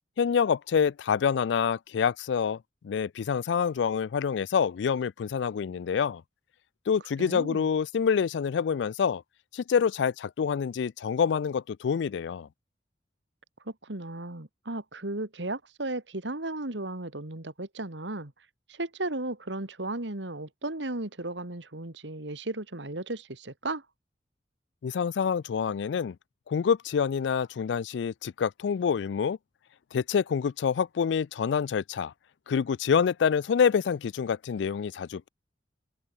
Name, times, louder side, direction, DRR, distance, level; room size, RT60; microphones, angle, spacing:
voice 1, 0.2-2.6 2.8-6.2 6.9-9.2 9.5-12.5 24.8-26.1 26.5-29.4 29.9-32.1 32.5-35.3, left 6 dB, 75° left, 0.4 m, -27 dB
voice 2, 7.2-7.7 13.7-18.3 18.7-23.8, right 2 dB, 75° right, 2.4 m, -35 dB
open air
head